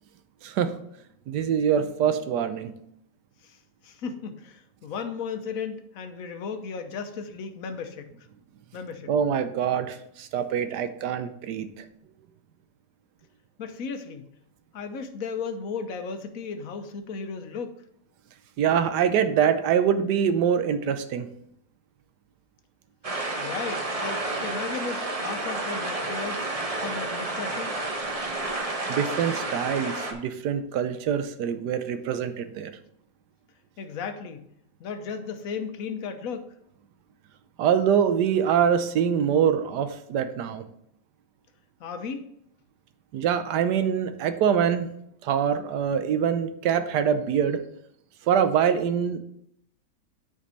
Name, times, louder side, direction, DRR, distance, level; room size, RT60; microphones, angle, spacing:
voice 1, 0.4-0.7 1.3-2.7 9.1-11.8 18.6-21.3 28.9-32.7 37.6-40.6 43.1-44.9 45.2-47.6 48.3-49.2, right 8 dB, 80° right, 10 dB, 1.3 m, -24 dB
voice 2, 3.8-8.1 8.7-9.1 13.6-14.3 14.7-17.8 23.4-26.5 26.7-27.8 33.8-34.4 34.8-36.5 41.8-42.3, left 5 dB, 60° left, 7 dB, 1.2 m, -35 dB
sound 1, 23.0-30.1, right 2 dB, 25° right, 0.9 m, -30 dB
8.9 x 5.3 x 4.0 m, 0.73 s
omnidirectional pair, 1.7 m